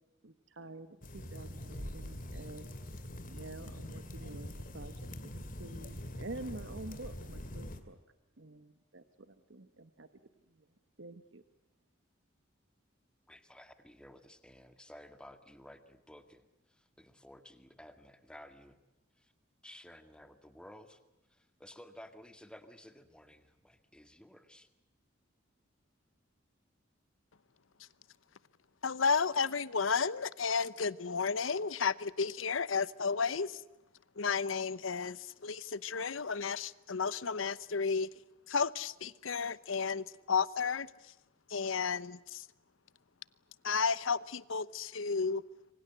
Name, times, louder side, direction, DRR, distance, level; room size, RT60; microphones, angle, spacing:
voice 1, 0.2-2.7 3.3-5.1 5.6-8.0 8.4-10.1 10.5-10.7 11.0-11.4, right 2 dB, 65° right, 11 dB, 1.2 m, -48 dB
sound 1, 1.0-7.8, left 1 dB, 45° left, 2.5 m, -44 dB
voice 2, 13.3-18.8 19.2-19.3 19.6-21.0 21.3-24.7, left 1 dB, 5° left, 9 dB, 1.8 m, -54 dB
voice 3, 28.8-33.5 34.2-35.2 35.4-38.1 38.5-40.9 41.5-42.4 43.6-45.4, left 5 dB, 85° left, 18 dB, 0.9 m, -32 dB
26.5 x 24.5 x 8.0 m, 1.0 s
head